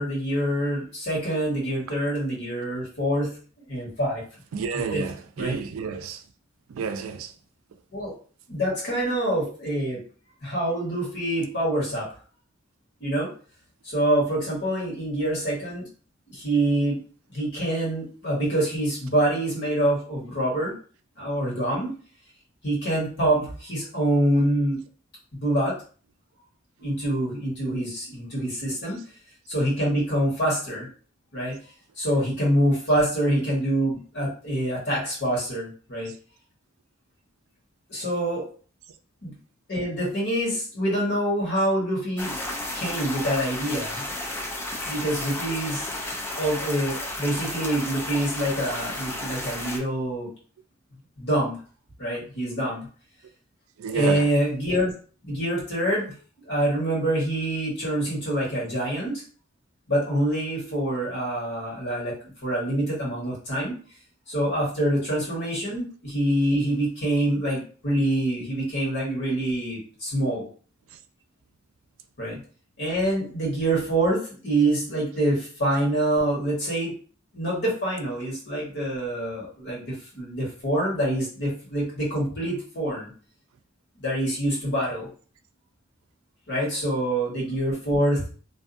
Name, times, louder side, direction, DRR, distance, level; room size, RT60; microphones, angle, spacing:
voice 1, 0.0-3.4 3.7-4.2 4.7-5.0 5.4-5.6 7.9-8.1 8.5-10.0 10.4-12.1 13.0-13.3 13.8-15.8 16.3-17.0 17.3-20.7 21.2-21.9 22.6-24.8 25.4-25.7 26.8-29.0 29.5-30.9 31.3-31.6 32.0-36.1 37.9-38.4 39.2-39.3 39.7-42.3 42.7-44.0 44.8-45.9 46.3-50.3 51.2-51.6 52.0-52.9 53.9-54.9 55.2-56.0 56.5-59.2 59.9-62.1 62.4-63.7 64.3-70.5 72.2-72.4 72.8-76.9 77.3-83.1 84.0-85.1 86.5-88.2, right 1 dB, 55° left, 1.4 m, -25 dB
voice 2, 4.5-6.2 6.7-7.3 36.1-36.2 53.8-54.3 70.9-71.0, right 6 dB, 85° right, 0.4 m, -31 dB
sound 1, 42.2-49.8, left 1 dB, 10° left, 0.4 m, -33 dB
2.6 x 2.3 x 2.5 m
head